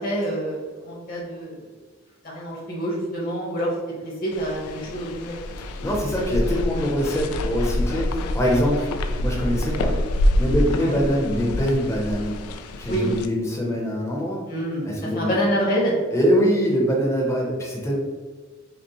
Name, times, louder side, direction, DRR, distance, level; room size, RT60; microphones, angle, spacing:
voice 1, 0.0-1.6 2.2-3.7 4.0-5.4 10.8-11.0 12.9-13.1 14.5-14.9 15.1-15.9, equal, 40° left, -4 dB, 1.1 m, -26 dB
sound 1, 4.3-13.3, left 1 dB, 90° left, 0.3 m, -26 dB
voice 2, 5.8-8.9 9.2-10.0 10.4-12.4 12.8-14.4 14.8-15.3 16.1-18.0, equal, 15° left, -2 dB, 0.7 m, -23 dB
5.2 x 2.1 x 3.0 m, 1.4 s
head